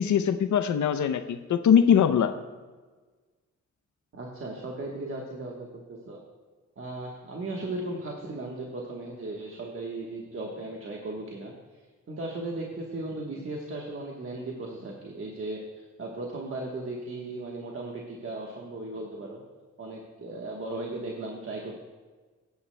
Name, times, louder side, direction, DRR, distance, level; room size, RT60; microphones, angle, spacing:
voice 1, 0.0-2.3, left 8 dB, 80° left, 9 dB, 0.6 m, -22 dB
voice 2, 4.1-6.2 6.8-11.5 12.1-19.4 19.8-21.8, right 2 dB, 45° right, -2 dB, 1.2 m, -36 dB
16.5 x 9.5 x 2.2 m, 1.4 s
wide cardioid pair, 140°, 29 cm